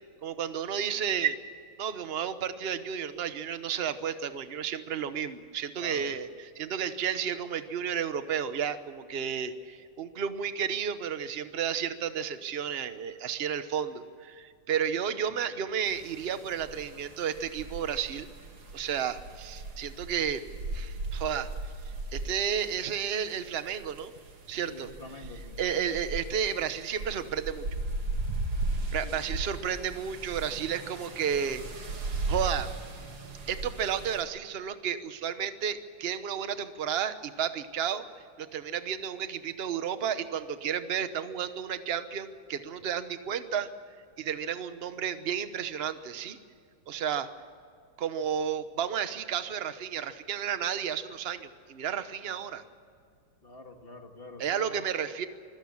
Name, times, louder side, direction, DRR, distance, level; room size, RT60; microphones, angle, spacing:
voice 1, 0.2-1.4 1.8-6.3 6.5-18.3 18.7-20.4 20.7-21.5 22.1-24.1 24.5-24.9 25.6-27.7 28.9-31.6 32.3-32.7 33.5-38.0 38.4-43.7 44.2-46.4 46.9-47.3 48.0-52.6 54.4-55.3, right 8 dB, 45° right, 11 dB, 0.8 m, -32 dB
voice 2, 5.7-6.1 24.7-25.6 29.0-29.6 53.4-54.9, left 2 dB, 25° left, 4 dB, 2.0 m, -47 dB
sound 1, 15.9-34.2, right 2 dB, 75° right, 3.3 m, -37 dB
25.0 x 16.0 x 7.2 m, 2.3 s
omnidirectional pair, 2.4 m